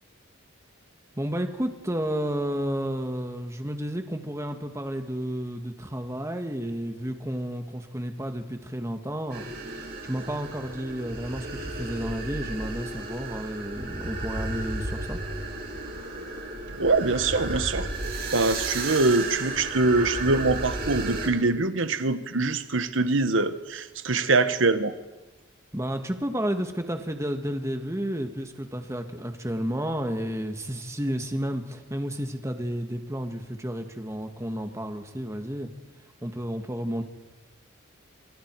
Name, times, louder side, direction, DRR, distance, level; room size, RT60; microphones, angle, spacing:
voice 1, 1.2-15.2 25.7-35.7 36.2-37.0, equal, 15° right, 5 dB, 1.8 m, -31 dB
sound 1, 9.3-21.3, right 2 dB, 50° right, 5.2 m, -33 dB
voice 2, 16.8-17.9 18.3-24.9, right 3 dB, 70° right, 10 dB, 1.3 m, -24 dB
27.0 x 26.5 x 4.7 m, 1.2 s
head